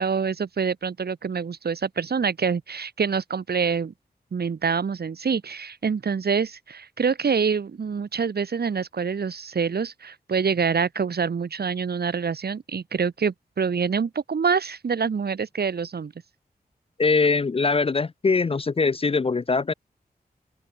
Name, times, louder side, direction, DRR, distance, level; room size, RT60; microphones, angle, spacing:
voice 1, 0.0-3.9 4.3-16.1, right 6 dB, 85° right, 2.4 m, -26 dB
voice 2, 17.0-19.7, left 4 dB, 35° left, 0.5 m, -22 dB
open air
wide cardioid pair, 95°, 16 cm